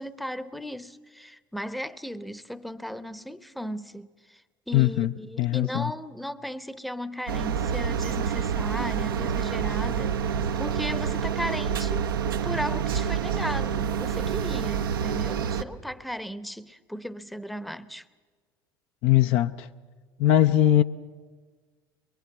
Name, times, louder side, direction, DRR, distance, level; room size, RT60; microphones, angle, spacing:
voice 1, 0.0-12.1 12.4-18.0, equal, ahead, 0.8 m, -36 dB
voice 2, 4.7-5.9 19.0-19.7 20.2-20.8, left 13 dB, 55° left, 0.7 m, -21 dB
sound 1, 7.3-15.6, right 7 dB, 75° right, 0.8 m, -28 dB
23.0 x 22.0 x 7.2 m
figure-of-eight pair, 65°, 12 cm